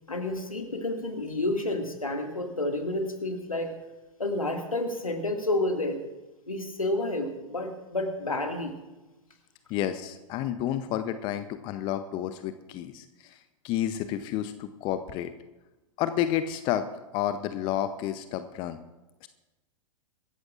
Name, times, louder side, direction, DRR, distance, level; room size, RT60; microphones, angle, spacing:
voice 1, 0.1-3.8 4.2-6.0 6.5-8.8, left 2 dB, 80° left, 4 dB, 2.1 m, -30 dB
voice 2, 9.7-13.4 13.6-15.3 16.0-16.9 17.1-18.8 19.2-19.3, left 11 dB, 30° left, 11 dB, 0.7 m, -30 dB
25.5 x 14.0 x 2.5 m, 1.1 s
figure-of-eight pair, 105°, 18 cm